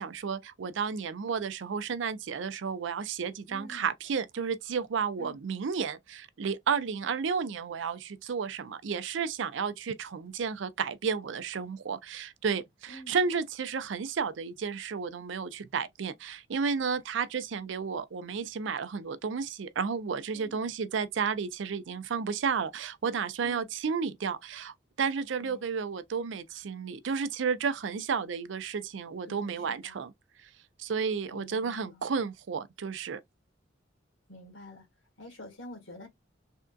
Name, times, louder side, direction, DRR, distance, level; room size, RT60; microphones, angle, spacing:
voice 1, 0.0-30.1 30.4-30.5 30.8-33.2, right 6 dB, 75° right, 0.4 m, -32 dB
voice 2, 3.5-3.9 5.2-5.4 12.9-13.2 20.3-20.6 23.4-23.7 25.4-25.6 29.3-30.0 31.3-32.0 34.3-34.9 35.2-36.1, left 1 dB, 85° left, 1.5 m, -48 dB
3.5 x 2.5 x 2.3 m
head